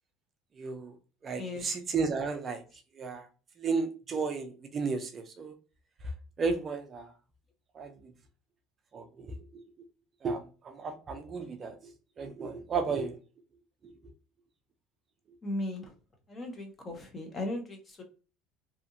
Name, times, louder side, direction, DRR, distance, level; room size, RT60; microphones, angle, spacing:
voice 1, 0.6-0.9 1.2-2.6 3.0-3.3 3.6-5.5 6.4-7.1 7.7-7.9 8.9-9.6 10.2-11.8 12.2-13.2, right 4 dB, 30° right, 6 dB, 0.4 m, -33 dB
voice 2, 15.4-15.9 16.3-18.0, left 1 dB, 20° left, 3 dB, 0.7 m, -37 dB
2.8 x 2.5 x 2.4 m, 0.35 s
cardioid pair, 130°, 0 cm